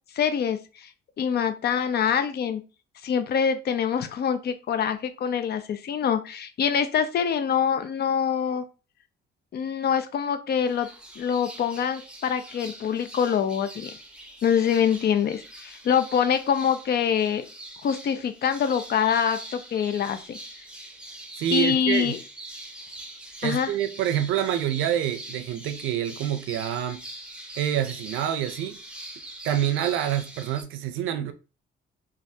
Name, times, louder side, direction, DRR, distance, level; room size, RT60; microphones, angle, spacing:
voice 1, 0.1-0.9 1.2-2.6 3.0-8.6 9.5-10.9 11.2-13.9 14.4-17.4 17.8-20.4 21.5-22.2 23.4-23.7, left 7 dB, 55° left, 0.5 m, -25 dB
sound 1, 10.7-30.6, right 1 dB, 5° right, 0.7 m, -43 dB
voice 2, 21.4-22.1 23.4-27.0 27.6-28.8 29.4-31.3, right 10 dB, 85° right, 0.5 m, -27 dB
3.2 x 2.5 x 2.7 m
cardioid pair, 90°, 20 cm